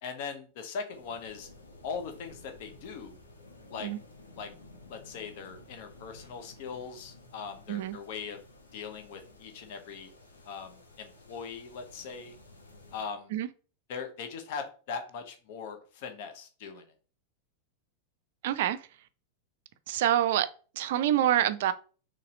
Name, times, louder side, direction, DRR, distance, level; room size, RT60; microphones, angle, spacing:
voice 1, 0.0-1.5 1.8-3.2 3.7-3.9 4.4-4.5 4.9-8.4 8.7-10.1 10.4-12.4 12.9-13.3 13.9-16.8, left 5 dB, 50° left, 0.9 m, -40 dB
sound 1, 0.9-13.0, left 2 dB, 75° left, 1.0 m, -54 dB
voice 2, 18.4-18.8 19.9-20.5 20.8-21.7, right 12 dB, 55° right, 0.4 m, -26 dB
4.1 x 3.2 x 3.8 m
figure-of-eight pair, 90°, 0 cm